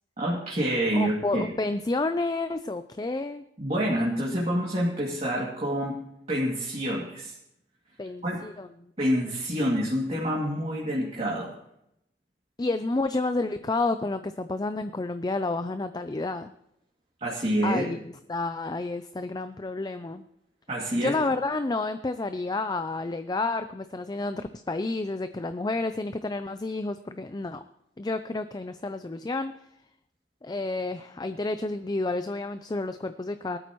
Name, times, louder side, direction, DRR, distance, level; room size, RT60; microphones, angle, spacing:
voice 1, 0.2-1.4 3.6-6.0 6.3-7.3 8.2-8.4 9.0-11.5 17.2-17.8 20.7-21.1, equal, 35° right, -4 dB, 2.4 m, -27 dB
voice 2, 0.9-3.4 8.0-8.9 12.6-16.5 17.6-20.2 20.9-27.6 28.0-29.5 30.4-33.6, left 2 dB, 25° left, 10 dB, 0.4 m, -30 dB
19.0 x 12.5 x 3.1 m, 0.79 s
head